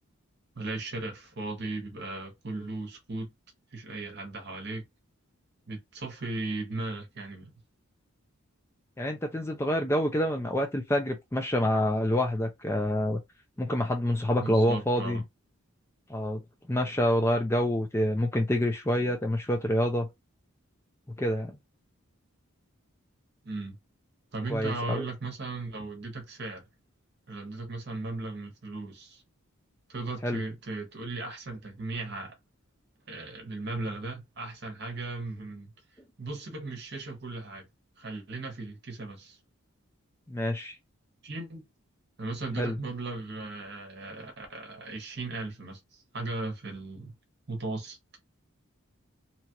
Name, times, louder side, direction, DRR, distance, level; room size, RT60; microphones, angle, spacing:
voice 1, 0.5-3.3 3.7-4.8 5.7-7.5 14.4-15.2 23.4-23.8 24.3-26.6 27.3-29.2 29.9-32.3 33.1-35.7 36.2-37.7 38.0-39.4 41.2-41.6 42.2-47.1 47.5-48.0, right 2 dB, 50° right, 1.0 m, -37 dB
voice 2, 9.0-13.2 13.6-15.2 16.1-16.4 16.7-20.1 21.2-21.6 24.5-25.1 30.2-30.4 40.3-40.8 42.6-42.8, left 1 dB, 10° left, 0.4 m, -27 dB
2.9 x 2.4 x 2.8 m
head